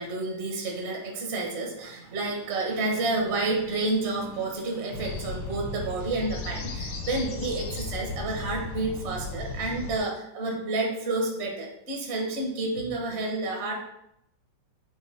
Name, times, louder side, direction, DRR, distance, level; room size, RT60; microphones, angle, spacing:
voice 1, 0.0-13.7, right 2 dB, 40° right, 0 dB, 1.0 m, -30 dB
sound 1, 4.9-10.0, left 3 dB, 65° left, 1.7 m, -35 dB
8.2 x 2.9 x 4.2 m, 0.79 s
omnidirectional pair, 2.4 m